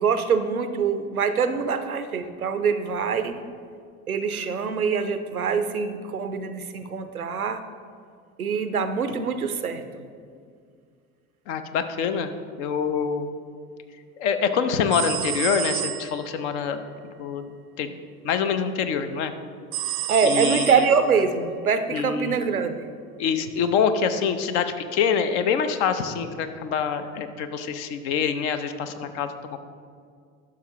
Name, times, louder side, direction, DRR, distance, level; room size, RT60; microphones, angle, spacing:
voice 1, 0.0-3.4 4.1-7.6 8.4-10.0 20.1-22.9, right 6 dB, 90° right, 10 dB, 0.5 m, -24 dB
voice 2, 11.5-12.3 12.6-13.3 14.2-16.8 17.2-18.0 18.2-19.3 20.2-20.8 21.9-22.3 23.2-29.6, left 6 dB, 55° left, 9 dB, 0.7 m, -25 dB
sound 1, 14.9-16.3 19.7-21.2, right 13 dB, 40° right, 0.5 m, -30 dB
11.5 x 6.1 x 2.9 m, 2.2 s
figure-of-eight pair, 70°, 42 cm